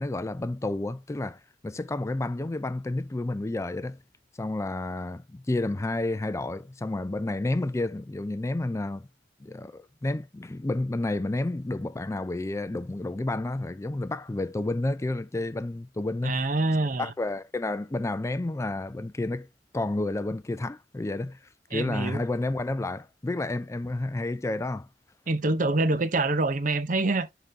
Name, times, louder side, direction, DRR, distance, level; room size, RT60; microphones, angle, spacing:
voice 1, 0.0-1.4 1.6-4.0 4.4-9.1 9.4-16.4 17.0-19.5 19.7-21.4 21.7-24.9, left 2 dB, 15° left, 0.4 m, -30 dB
voice 2, 16.2-17.1 21.7-22.2 25.3-27.3, right 2 dB, 45° right, 0.7 m, -25 dB
11.0 x 3.8 x 2.6 m
head